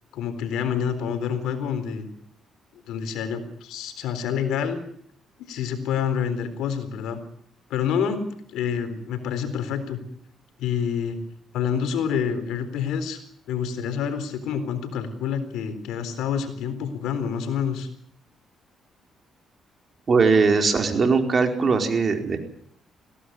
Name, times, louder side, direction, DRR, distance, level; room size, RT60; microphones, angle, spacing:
voice 1, 0.1-2.1 2.7-4.8 5.4-7.2 7.7-8.2 8.5-10.0 10.6-11.2 11.5-13.2 13.5-17.9, left 7 dB, 85° left, 10 dB, 3.9 m, -27 dB
voice 2, 20.1-22.4, right 4 dB, 40° right, 5 dB, 4.6 m, -20 dB
21.0 x 17.0 x 9.4 m, 0.64 s
cardioid pair, 90°, 0 cm